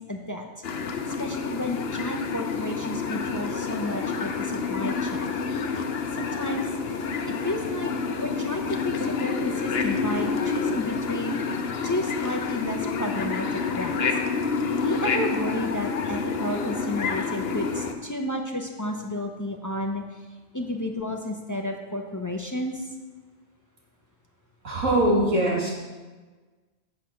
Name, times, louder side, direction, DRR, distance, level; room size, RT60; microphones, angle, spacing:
voice 1, 0.1-0.5 1.2-5.3 6.1-6.7 7.4-7.9 8.2-11.4 11.8-14.0 14.8-20.0 20.5-22.8, left 1 dB, 20° left, 3 dB, 0.5 m, -31 dB
sound 1, 0.6-17.9, left 5 dB, 55° left, 0.9 m, -28 dB
voice 2, 24.6-25.7, right 1 dB, 75° right, -4 dB, 2.7 m, -22 dB
8.6 x 6.5 x 5.8 m, 1.3 s
omnidirectional pair, 1.3 m